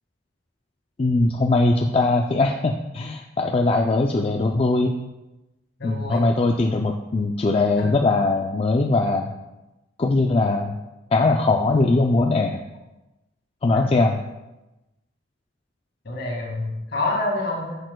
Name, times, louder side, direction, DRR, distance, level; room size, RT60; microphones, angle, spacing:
voice 1, 1.0-4.9 5.8-9.3 10.0-10.8 11.1-12.6 13.6-14.2, left 2 dB, 30° left, 2 dB, 0.4 m, -20 dB
voice 2, 5.8-6.3 7.8-7.9 13.7-13.9 16.0-17.8, left 2 dB, 60° left, -1 dB, 2.0 m, -27 dB
10.5 x 6.7 x 2.2 m, 1.0 s
head